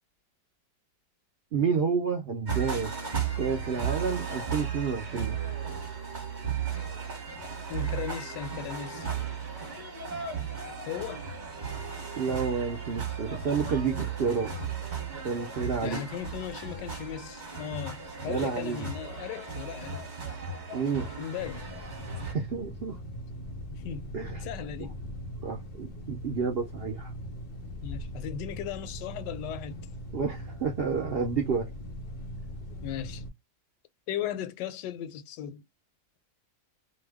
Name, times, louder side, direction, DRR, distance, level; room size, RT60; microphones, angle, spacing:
voice 1, 1.5-2.9 3.4-5.4 12.2-14.5 15.2-16.0 18.3-18.9 20.7-21.1 22.2-23.0 24.1-24.4 25.4-27.1 30.1-31.7, right 5 dB, 75° right, 0.5 m, -30 dB
sound 1, 2.5-22.3, right 6 dB, 30° right, 1.0 m, -35 dB
voice 2, 7.7-9.1 10.9-11.2 15.8-20.1 21.2-21.7 23.7-25.0 27.8-29.9 32.8-33.2 34.1-35.6, left 10 dB, 85° left, 1.2 m, -37 dB
sound 2, 21.4-33.3, equal, 65° left, 0.5 m, -40 dB
2.8 x 2.2 x 3.4 m
omnidirectional pair, 1.8 m